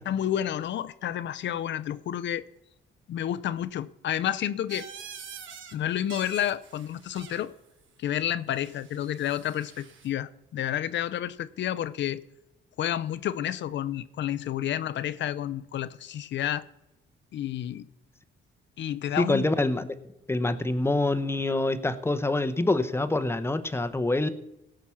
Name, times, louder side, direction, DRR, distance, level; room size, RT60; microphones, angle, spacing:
voice 1, 0.1-2.4 3.1-4.9 5.7-7.5 8.0-12.2 12.8-16.6 17.3-17.9 18.8-19.5, left 11 dB, 65° left, 0.6 m, -30 dB
sound 1, 4.7-5.8 6.0-7.5 8.6-10.1, right 7 dB, 75° right, 1.3 m, -45 dB
voice 2, 19.2-19.9 20.3-24.3, left 2 dB, 10° left, 0.8 m, -26 dB
17.5 x 6.0 x 5.7 m
cardioid pair, 90°, 20 cm